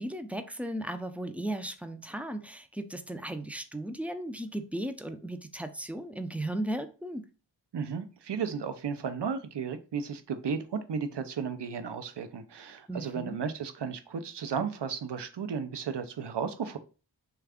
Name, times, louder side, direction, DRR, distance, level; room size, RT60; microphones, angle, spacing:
voice 1, 0.0-7.2 12.9-13.4, right 1 dB, 5° right, 8 dB, 0.3 m, -36 dB
voice 2, 7.7-16.8, right 6 dB, 65° right, 9 dB, 0.5 m, -34 dB
3.2 x 2.3 x 3.5 m, 0.34 s
wide cardioid pair, 45°, 45 cm